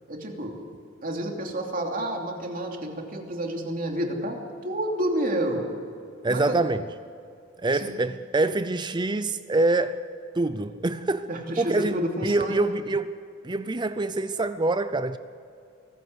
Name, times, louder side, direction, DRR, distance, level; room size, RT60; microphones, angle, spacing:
voice 1, 0.1-0.5 1.0-4.4 4.6-5.7 6.3-6.6 7.7-7.9 11.3-12.6, right 1 dB, 45° right, 2.9 m, -29 dB
voice 2, 6.2-6.8 7.6-10.0 10.3-11.3 11.6-12.0 12.2-13.2 13.4-15.2, right 2 dB, 20° right, 0.5 m, -25 dB
24.0 x 15.0 x 7.9 m
head